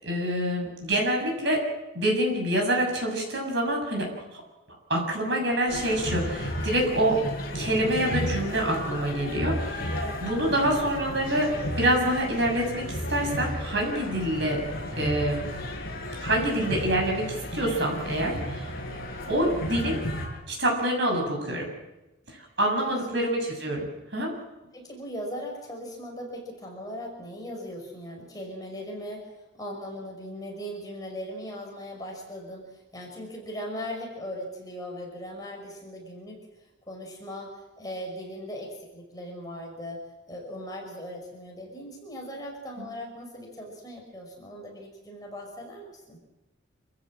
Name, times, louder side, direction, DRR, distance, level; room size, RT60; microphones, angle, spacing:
voice 1, 0.0-1.6 1.9-4.4 4.9-7.2 7.5-14.6 15.0-15.5 16.2-18.7 19.3-20.0 20.5-21.7 22.6-24.3 42.8-42.9, right 1 dB, 60° right, 1 dB, 7.0 m, -26 dB
sound 1, 5.7-20.3, equal, 50° left, 6.0 m, -33 dB
voice 2, 19.2-19.6 23.1-23.3 24.7-36.4 36.9-40.0 40.3-46.2, equal, 20° left, 0 dB, 5.5 m, -39 dB
27.0 x 15.5 x 7.7 m, 1.0 s
head